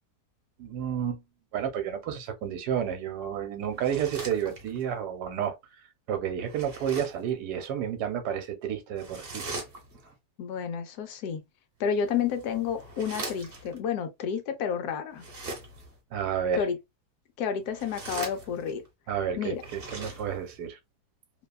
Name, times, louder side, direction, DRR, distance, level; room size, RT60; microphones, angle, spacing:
voice 1, 0.6-1.2 1.5-5.5 6.1-9.5 16.1-16.7 19.1-20.8, right 8 dB, 75° right, 1.2 m, -31 dB
sound 1, 3.7-4.9 6.4-7.3 9.0-10.1 11.9-13.8 15.1-16.0 17.6-18.9 19.5-20.6, right 3 dB, 45° right, 0.9 m, -41 dB
voice 2, 10.4-11.4 11.8-15.2 16.5-16.8 17.4-18.8 19.4-19.6, left 7 dB, 70° left, 1.1 m, -30 dB
2.9 x 2.2 x 2.2 m
omnidirectional pair, 1.8 m